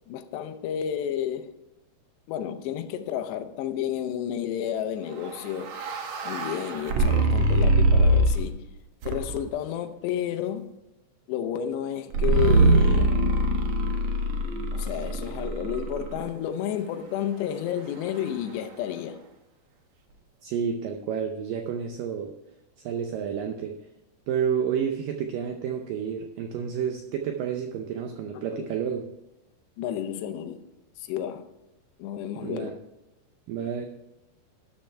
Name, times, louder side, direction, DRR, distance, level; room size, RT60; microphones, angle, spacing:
voice 1, 0.1-1.6 2.3-5.8 6.2-8.6 9.0-10.7 11.3-13.2 14.7-19.2 28.5-28.7 29.8-30.7 31.0-31.5 32.0-32.7, left 10 dB, 85° left, 3.0 m, -31 dB
sound 1, 5.2-8.6 9.0-9.6 12.1-16.2, right 2 dB, 60° right, 1.9 m, -23 dB
voice 2, 20.4-22.3 22.8-23.8 24.3-29.1 32.4-32.8 33.5-33.9, right 7 dB, 80° right, 2.0 m, -30 dB
12.5 x 10.5 x 3.4 m
omnidirectional pair, 4.9 m